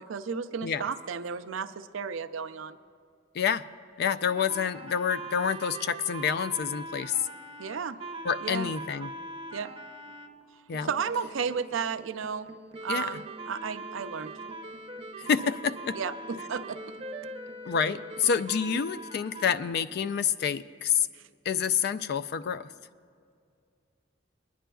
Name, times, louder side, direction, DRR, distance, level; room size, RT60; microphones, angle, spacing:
voice 1, 0.0-2.8 7.6-8.0 8.4-8.7 9.5-9.7 10.8-12.5 12.8-14.3 15.9-16.9 21.1-21.2, right 6 dB, 80° right, 10 dB, 0.5 m, -33 dB
voice 2, 4.0-7.2 8.2-9.1 10.7-10.9 12.9-13.1 15.2-15.9 17.7-21.1 21.5-22.7, left 7 dB, 55° left, 13 dB, 0.3 m, -28 dB
sound 1, 4.2-10.3 10.7-19.7, right 2 dB, 30° right, 0.6 m, -42 dB
23.5 x 10.0 x 2.3 m, 2.3 s
head